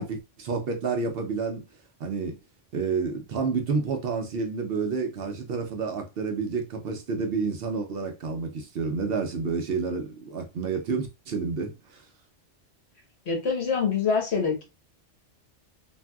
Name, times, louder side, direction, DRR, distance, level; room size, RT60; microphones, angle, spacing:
voice 1, 0.0-1.7 2.0-2.4 2.7-12.1, right 4 dB, 60° right, 0.7 m, -29 dB
voice 2, 13.3-14.6, left 5 dB, 65° left, 1.3 m, -25 dB
3.4 x 2.6 x 2.2 m
omnidirectional pair, 1.2 m